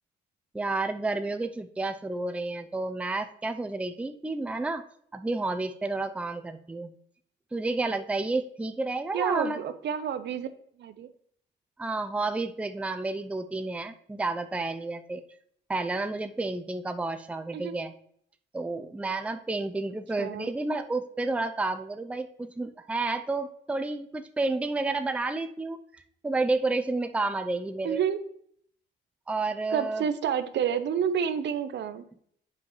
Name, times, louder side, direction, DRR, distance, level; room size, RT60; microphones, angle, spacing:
voice 1, 0.5-4.8 5.1-6.9 7.5-9.6 11.8-15.2 15.7-17.9 18.5-25.8 26.2-28.0 29.3-30.0, right 3 dB, 5° right, 9 dB, 0.5 m, -30 dB
voice 2, 9.1-10.5 10.8-11.1 17.5-17.8 20.2-20.5 27.8-28.2 29.7-32.0, right 8 dB, 65° right, 12 dB, 0.6 m, -29 dB
7.6 x 5.5 x 3.1 m, 0.65 s
cardioid pair, 90°, 20 cm